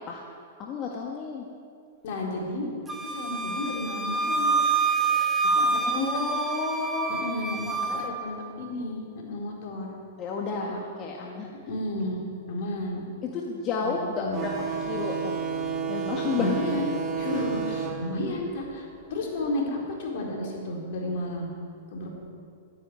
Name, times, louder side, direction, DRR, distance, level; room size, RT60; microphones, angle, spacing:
voice 1, 0.6-1.5 5.9-7.3 7.7-8.1 10.2-11.6 13.3-14.5 14.9-15.3 15.9-16.7, left 4 dB, 35° left, -1 dB, 1.7 m, -31 dB
voice 2, 2.0-2.7 3.0-4.6 5.5-6.1 7.1-9.9 10.5-10.8 11.7-13.0 13.8-14.4 16.4-21.5 21.9-22.1, left 1 dB, 60° left, -1 dB, 4.3 m, -32 dB
Wind instrument woodwind instrument, 2.9-8.1, right 4 dB, 10° right, 1.5 m, -26 dB
sound 1, 14.3-19.5, right 6 dB, 30° right, 2.4 m, -32 dB
12.5 x 10.0 x 9.8 m, 2.4 s
hypercardioid pair, 115°, 0 cm